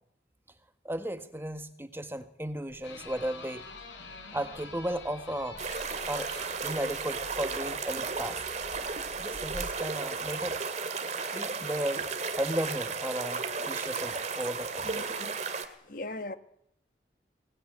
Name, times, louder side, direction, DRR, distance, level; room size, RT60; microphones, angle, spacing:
voice 1, 0.8-3.7 4.3-5.7 6.1-6.3 6.6-8.4 9.2-10.6 11.3-12.1 12.4-14.9, right 1 dB, 10° right, 9 dB, 1.5 m, -35 dB
sound 1, 2.7-9.8, equal, 60° right, 3.5 m, -50 dB
sound 2, 2.8-7.3, left 4 dB, 85° left, 5.5 m, -47 dB
sound 3, 5.6-15.7, right 4 dB, 40° right, 2.4 m, -34 dB
voice 2, 14.8-15.3 15.9-16.4, left 2 dB, 50° left, 12 dB, 1.3 m, -39 dB
24.0 x 20.5 x 9.3 m, 0.74 s
head